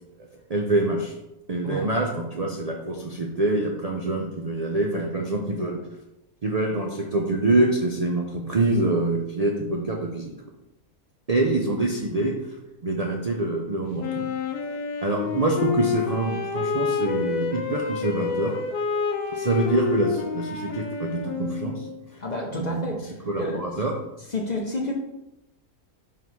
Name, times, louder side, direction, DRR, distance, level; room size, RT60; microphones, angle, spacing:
voice 1, 0.5-1.1 1.5-5.8 6.4-10.3 11.3-12.4 12.8-14.3 15.0-18.5 19.3-21.9 22.5-23.0 23.3-23.9, right 2 dB, 85° right, 0 dB, 0.3 m, -25 dB
Wind instrument woodwind instrument, 14.0-22.0, left 6 dB, 85° left, 1.2 m, -28 dB
voice 2, 22.2-23.1 23.4-23.6 24.3-24.9, left 1 dB, 40° left, 0 dB, 0.6 m, -29 dB
4.6 x 3.8 x 5.4 m, 0.93 s
omnidirectional pair, 1.6 m